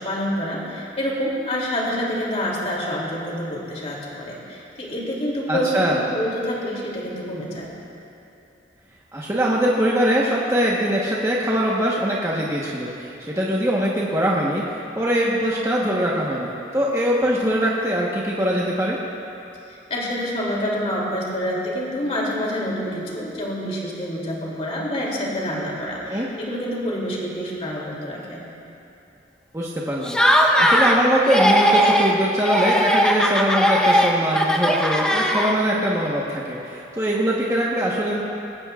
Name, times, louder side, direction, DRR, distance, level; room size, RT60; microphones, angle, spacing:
voice 1, 0.0-7.7 19.7-28.4, equal, 35° left, -4 dB, 2.9 m, -27 dB
voice 2, 5.5-6.0 9.1-19.0 26.1-26.3 29.5-30.2 30.6-38.2, equal, 15° right, -5 dB, 1.2 m, -22 dB
Laughter, 30.0-31.0 31.3-32.2 32.4-35.8, equal, 5° left, 0.9 m, -18 dB
20.5 x 17.0 x 2.5 m, 2.9 s
head